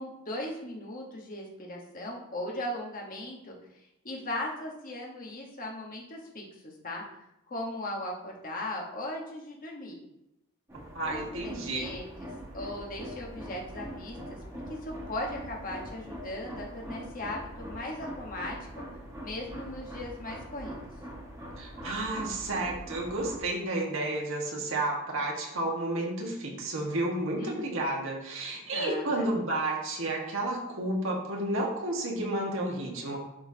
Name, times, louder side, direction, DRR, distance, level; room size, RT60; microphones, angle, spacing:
voice 1, 0.0-3.6 4.0-7.0 7.5-10.0 11.0-14.4 14.7-18.8 19.2-20.8 27.4-27.7 28.7-29.3, left 1 dB, 40° left, -1 dB, 1.3 m, -38 dB
sound 1, 10.7-23.4, equal, 15° right, 1.7 m, -42 dB
voice 2, 10.9-11.9 21.6-33.2, right 2 dB, 60° right, -1 dB, 1.6 m, -31 dB
11.0 x 4.1 x 2.8 m, 0.84 s
head